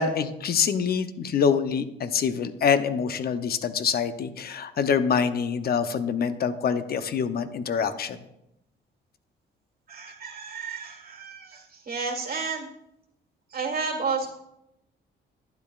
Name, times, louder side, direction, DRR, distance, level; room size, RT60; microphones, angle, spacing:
voice 1, 0.0-8.2, left 6 dB, 50° left, 10 dB, 0.7 m, -25 dB
voice 2, 9.9-12.7 13.5-14.3, right 4 dB, 50° right, 2 dB, 1.5 m, -31 dB
11.5 x 10.5 x 2.4 m, 0.85 s
cardioid pair, 90°, 20 cm